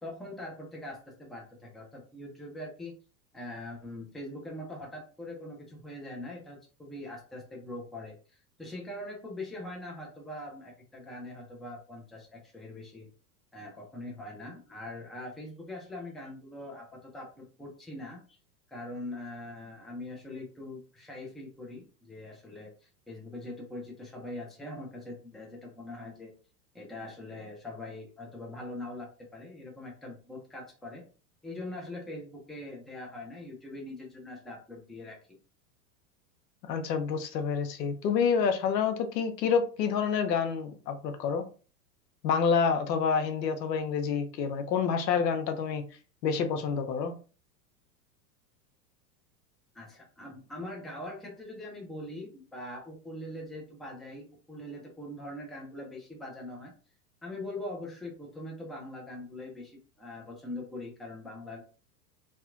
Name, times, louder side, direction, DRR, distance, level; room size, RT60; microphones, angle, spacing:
voice 1, 0.0-2.9 3.3-8.2 8.6-13.1 13.5-18.4 18.7-26.3 26.7-31.0 31.4-35.2 49.7-56.7 57.2-61.6, left 1 dB, ahead, 0.5 m, -42 dB
voice 2, 36.6-41.4 42.2-45.8 46.2-47.1, left 6 dB, 80° left, 0.7 m, -28 dB
2.8 x 2.4 x 2.5 m
hypercardioid pair, 105°, 49 cm